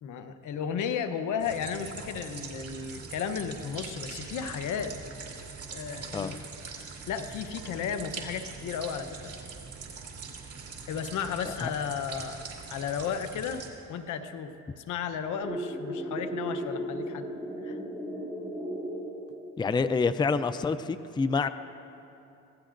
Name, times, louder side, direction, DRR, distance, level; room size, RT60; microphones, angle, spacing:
voice 1, 0.0-5.0 5.7-6.3 7.1-9.3 10.9-13.6 13.9-17.3 17.6-17.8, left 7 dB, 80° left, 9 dB, 0.9 m, -34 dB
sound 1, 1.4-13.7, right 5 dB, 50° right, 2.4 m, -42 dB
sound 2, 15.4-19.7, equal, 5° right, 4.1 m, -35 dB
voice 2, 19.6-21.5, left 4 dB, 15° left, 11 dB, 0.4 m, -27 dB
25.0 x 16.5 x 2.6 m, 2.8 s
cardioid pair, 90°, 30 cm